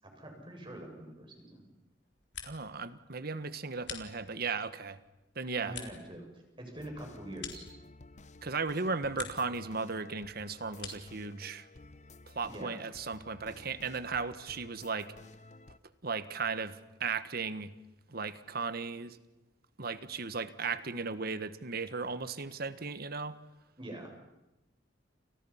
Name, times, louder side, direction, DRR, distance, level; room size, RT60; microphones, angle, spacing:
voice 1, 0.0-1.6 5.6-6.3 6.6-7.7 12.5-12.8 23.8-24.1, right 1 dB, 25° right, 2 dB, 7.1 m, -44 dB
sound 1, 2.0-2.8 3.1-4.6 5.0-8.3 8.6-9.6 9.9-11.2, left 8 dB, 70° left, 3.9 m, -48 dB
voice 2, 2.4-5.0 5.3-5.8 8.4-11.7 12.3-15.1 16.0-17.7 18.1-19.2 19.8-23.4, right 4 dB, 55° right, 13 dB, 1.4 m, -36 dB
sound 2, 6.8-15.8, left 2 dB, 40° left, 0.9 m, -54 dB
30.0 x 29.5 x 5.8 m, 0.96 s
head